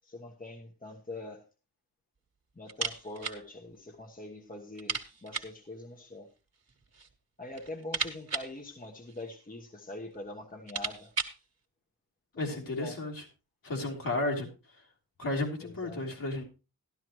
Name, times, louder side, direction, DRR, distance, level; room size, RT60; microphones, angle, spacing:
voice 1, 0.0-1.5 2.5-6.3 7.4-11.1 12.4-13.0 15.6-16.0, left 2 dB, 20° left, 1.2 m, -44 dB
sound 1, 2.7-3.4 3.7-3.8 4.2-4.3 4.7-5.6 6.6-7.1 7.5-9.5 10.1-10.2 10.5-11.4, right 5 dB, 40° right, 1.5 m, -36 dB
voice 2, 12.4-13.2 13.6-14.5 15.2-16.4, left 2 dB, 60° left, 3.5 m, -33 dB
13.0 x 12.0 x 3.0 m
wide cardioid pair, 90°, 38 cm